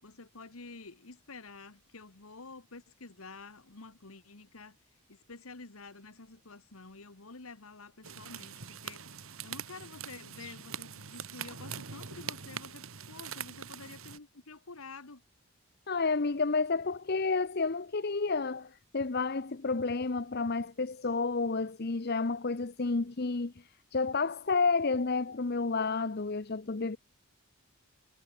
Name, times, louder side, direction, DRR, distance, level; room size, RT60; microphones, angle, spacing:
voice 1, 0.0-4.8 5.1-15.2, left 3 dB, 75° left, 1.7 m, -49 dB
sound 1, 8.0-14.2, right 7 dB, 70° right, 2.2 m, -43 dB
voice 2, 15.9-23.5 23.9-27.0, left 4 dB, 45° left, 0.7 m, -30 dB
head